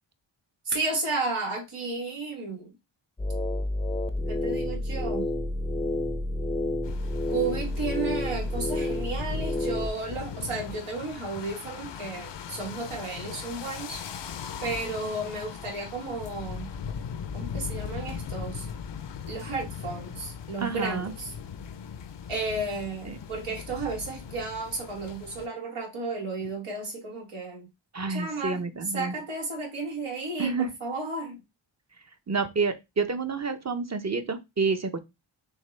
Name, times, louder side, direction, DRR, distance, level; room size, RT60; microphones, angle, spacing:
voice 1, 0.6-2.7 4.3-5.3 7.3-14.0 14.6-16.7 17.3-18.7 19.3-21.3 22.3-27.7 28.1-28.6 28.9-31.4, right 3 dB, 90° right, 1.5 m, -33 dB
sound 1, 3.2-9.9, left 1 dB, 10° left, 0.5 m, -29 dB
sound 2, 6.8-25.5, left 7 dB, 60° left, 0.6 m, -39 dB
voice 2, 20.6-21.1 23.1-23.2 27.9-29.1 30.4-30.7 32.3-35.0, right 4 dB, 35° right, 0.7 m, -29 dB
6.3 x 2.2 x 3.2 m
wide cardioid pair, 60°, 49 cm